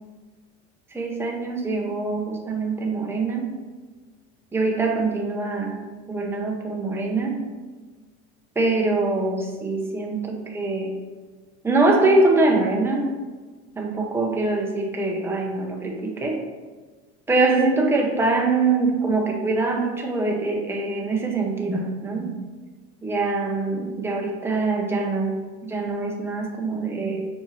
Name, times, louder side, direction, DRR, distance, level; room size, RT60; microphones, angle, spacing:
voice 1, 0.9-3.5 4.5-5.8 6.1-7.4 8.6-10.9 11.6-13.1 13.8-16.4 17.3-22.3 23.0-27.3, right 3 dB, 10° right, 0 dB, 0.8 m, -23 dB
4.4 x 4.4 x 5.5 m, 1.3 s
supercardioid pair, 120°, 30 cm